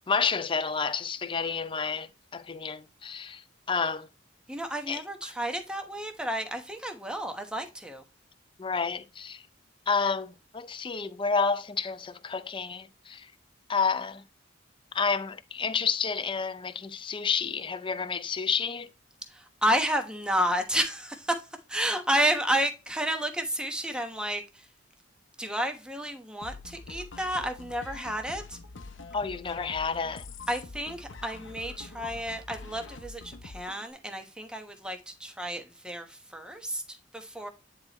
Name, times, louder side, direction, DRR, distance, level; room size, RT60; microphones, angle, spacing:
voice 1, 0.1-3.4 3.7-4.1 4.9-5.0 8.6-9.4 9.9-13.3 13.7-14.2 14.9-18.9 29.1-30.2, left 5 dB, 25° left, 0.5 m, -30 dB
voice 2, 4.5-8.0 19.3-24.7 25.4-28.6 30.5-37.5, equal, 5° right, 1.0 m, -31 dB
sound 1, 26.4-33.8, left 3 dB, 75° left, 0.8 m, -45 dB
9.6 x 4.3 x 3.0 m
head